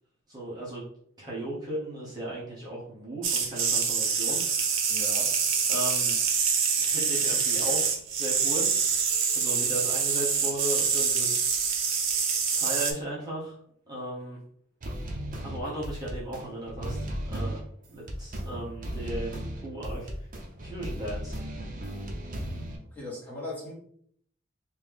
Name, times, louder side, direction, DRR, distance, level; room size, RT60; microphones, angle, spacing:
voice 1, 0.3-0.8 1.2-4.7 5.7-6.2 6.8-8.7 9.3-11.8 12.5-13.6 13.9-14.4 15.4-17.0 17.3-17.6 17.9-20.1 20.6-21.4, right 1 dB, 20° right, -7 dB, 1.0 m, -36 dB
sound 1, 3.2-12.9, right 6 dB, 75° right, 0.7 m, -26 dB
voice 2, 4.9-5.3 9.5-9.7 22.9-23.7, left 1 dB, 10° left, -6 dB, 1.3 m, -38 dB
sound 2, 14.8-22.8, equal, 40° right, 0.7 m, -36 dB
3.2 x 2.7 x 3.5 m, 0.65 s
head